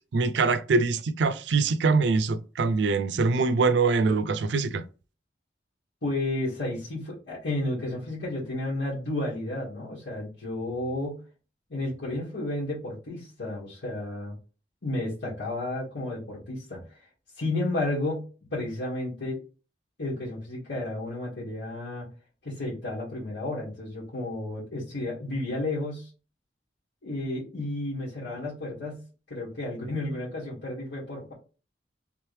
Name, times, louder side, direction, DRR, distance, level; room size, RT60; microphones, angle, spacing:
voice 1, 0.1-4.8, right 4 dB, 70° right, 0.4 m, -23 dB
voice 2, 6.0-11.2 11.7-14.3 14.8-16.9 17.4-19.4 20.0-22.1 22.4-26.1 27.0-31.3, left 2 dB, 85° left, 1.9 m, -32 dB
3.5 x 3.1 x 3.2 m
head